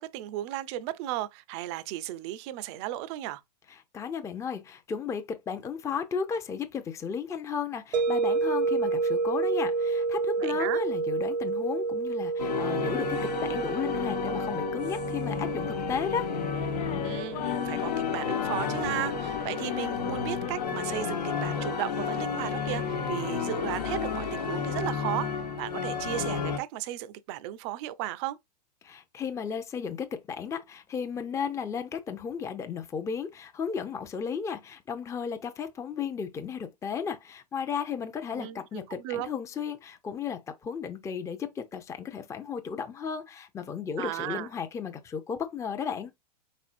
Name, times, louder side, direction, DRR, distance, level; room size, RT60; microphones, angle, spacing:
voice 1, 0.0-3.4 10.4-10.8 16.9-28.4 38.3-39.3 44.0-44.5, right 14 dB, 45° right, 0.5 m, -35 dB
voice 2, 3.9-16.3 28.8-46.1, left 6 dB, 15° left, 0.6 m, -34 dB
sound 1, 7.9-22.9, right 4 dB, 85° right, 0.9 m, -32 dB
sound 2, 12.4-26.6, left 6 dB, 80° left, 1.1 m, -32 dB
sound 3, 15.3-20.7, left 12 dB, 55° left, 0.6 m, -38 dB
4.3 x 4.1 x 2.5 m
hypercardioid pair, 115°, 21 cm